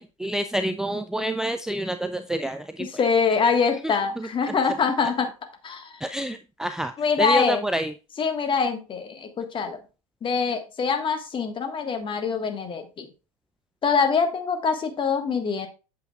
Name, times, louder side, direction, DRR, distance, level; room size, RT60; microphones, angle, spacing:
voice 1, 0.0-2.9 3.8-4.5 6.0-7.9, right 1 dB, 5° right, 9 dB, 0.4 m, -28 dB
voice 2, 2.8-5.3 5.6-5.9 7.0-7.6 8.2-9.8 10.2-13.1 13.8-15.7, left 5 dB, 30° left, 7 dB, 1.5 m, -24 dB
8.2 x 7.8 x 2.4 m, 0.32 s
figure-of-eight pair, 75°, 17 cm